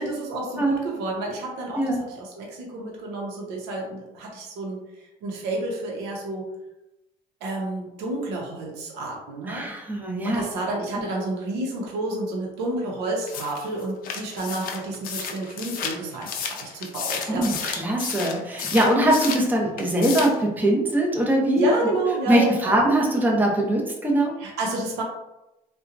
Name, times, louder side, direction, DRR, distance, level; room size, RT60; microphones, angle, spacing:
voice 1, 0.0-4.8 5.2-6.5 7.4-9.7 10.2-17.5 21.6-22.7 24.4-25.0, right 2 dB, 85° right, -1 dB, 0.8 m, -30 dB
voice 2, 9.5-10.5 17.3-21.7 22.3-24.3, right 1 dB, 10° right, -1 dB, 0.6 m, -22 dB
sound 1, 13.3-19.5 19.8-20.4, left 6 dB, 55° left, 0.4 m, -32 dB
2.7 x 2.2 x 2.4 m, 0.93 s
cardioid pair, 105°, 17 cm